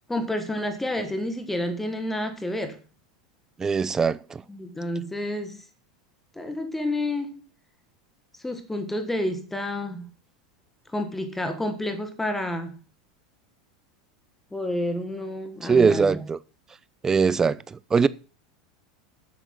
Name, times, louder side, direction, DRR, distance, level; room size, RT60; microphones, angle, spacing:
voice 1, 0.1-2.8 4.5-5.6 6.3-7.4 8.4-10.1 10.9-12.8 14.5-16.3, left 1 dB, 5° left, 1.5 m, -29 dB
voice 2, 3.6-4.4 15.6-16.4 17.0-18.1, right 5 dB, 15° right, 0.5 m, -21 dB
8.3 x 7.9 x 6.0 m
figure-of-eight pair, 80°, 3 cm